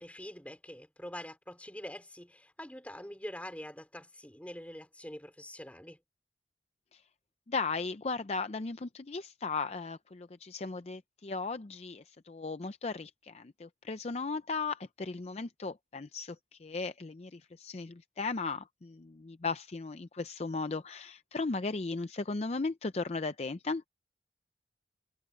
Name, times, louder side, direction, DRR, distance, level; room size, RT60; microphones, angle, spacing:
voice 1, 0.0-6.0, left 1 dB, 10° left, 3.3 m, -45 dB
voice 2, 7.5-23.9, left 4 dB, 35° left, 0.5 m, -36 dB
head